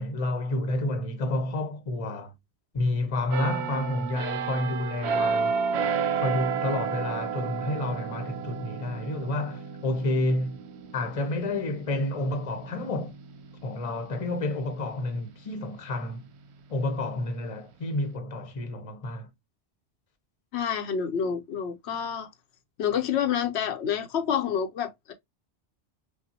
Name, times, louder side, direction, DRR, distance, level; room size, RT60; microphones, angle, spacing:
voice 1, 0.0-2.3 2.7-5.6 6.2-10.6 10.9-13.2 13.6-16.3 16.7-19.3, left 2 dB, 35° left, 0.8 m, -30 dB
sound 1, 3.3-14.8 15.3-15.5, right 6 dB, 85° right, 1.0 m, -32 dB
voice 2, 20.5-22.3 22.8-25.1, left 8 dB, 80° left, 0.9 m, -28 dB
5.5 x 2.1 x 2.7 m
omnidirectional pair, 1.1 m